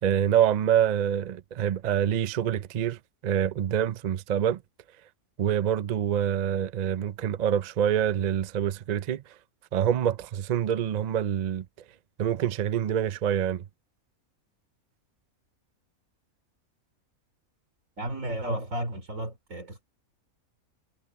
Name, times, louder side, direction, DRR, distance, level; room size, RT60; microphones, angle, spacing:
voice 1, 0.0-3.0 3.2-4.6 5.4-9.2 9.7-11.6 12.2-13.6, right 9 dB, 80° right, 0.3 m, -26 dB
voice 2, 18.0-19.8, right 1 dB, 60° right, 3.6 m, -33 dB
omnidirectional pair, 1.5 m